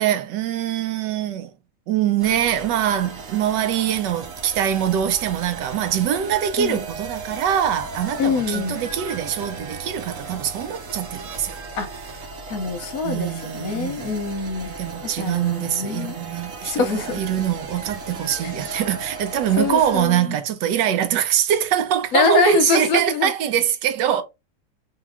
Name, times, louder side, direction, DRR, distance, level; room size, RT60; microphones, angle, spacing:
voice 1, 0.0-1.5 1.9-11.6 13.0-14.1 14.8-24.2, right 10 dB, 75° right, 1.2 m, -23 dB
sound 1, 2.2-20.0, right 3 dB, 55° right, 1.1 m, -36 dB
voice 2, 8.2-8.9 11.7-11.9 12.5-14.7 15.2-16.2 16.6-17.4 18.4-18.5 19.6-20.4 22.1-23.3, left 3 dB, 60° left, 1.1 m, -23 dB
3.6 x 2.8 x 3.4 m
omnidirectional pair, 2.0 m